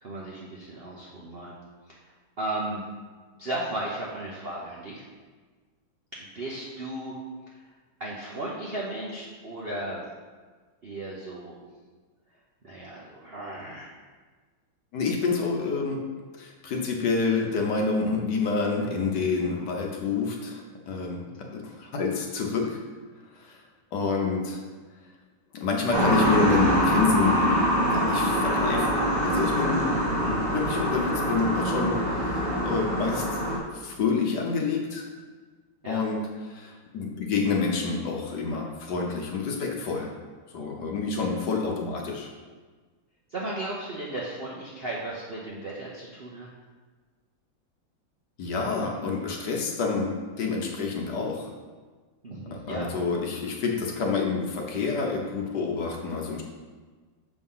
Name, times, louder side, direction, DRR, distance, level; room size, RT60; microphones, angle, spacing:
voice 1, 0.0-1.6 2.4-2.8 3.4-5.0 6.3-7.1 8.0-10.0 10.8-11.6 12.6-13.9 30.1-30.4 35.8-36.0 43.3-46.5 52.2-52.9, right 1 dB, 55° right, -5 dB, 0.6 m, -35 dB
voice 2, 14.9-16.0 16.4-21.2 21.6-22.8 23.4-23.6 23.9-24.6 25.5-27.5 27.9-29.0 29.2-33.2 33.7-35.0 35.9-40.1 40.5-42.3 48.4-51.5 52.5-56.4, left 4 dB, 65° left, 0 dB, 1.3 m, -28 dB
sound 1, 25.9-33.6, equal, 25° right, 1.2 m, -24 dB
6.9 x 3.7 x 5.5 m, 1.4 s
omnidirectional pair, 2.2 m